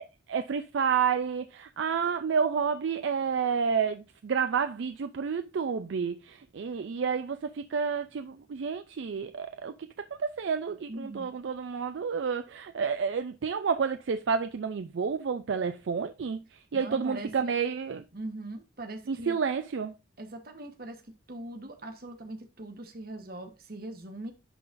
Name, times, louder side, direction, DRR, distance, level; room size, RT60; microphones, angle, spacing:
voice 1, 0.0-9.7 10.2-18.0 19.1-19.9, right 6 dB, 70° right, 0.4 m, -30 dB
voice 2, 10.9-11.3 16.7-17.6 18.1-19.4 20.2-21.0 21.3-24.3, right 1 dB, 50° right, 1.1 m, -41 dB
11.0 x 3.9 x 2.5 m
head